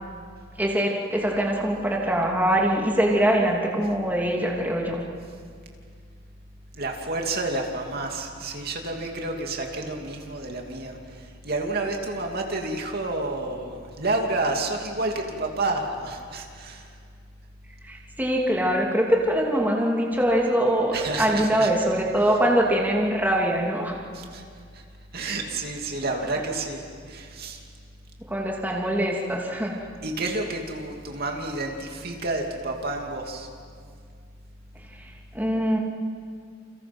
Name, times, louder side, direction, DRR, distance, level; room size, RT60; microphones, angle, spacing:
voice 1, 0.6-5.0 17.8-24.0 26.2-26.5 28.2-29.8 34.8-35.8, right 1 dB, 10° right, -1 dB, 2.7 m, -23 dB
voice 2, 6.7-16.9 20.9-21.7 24.1-24.4 24.7-24.8 25.1-26.8 27.1-27.6 30.0-33.5, right 2 dB, 50° right, 2 dB, 2.7 m, -30 dB
29.0 x 28.5 x 6.1 m, 2.1 s
head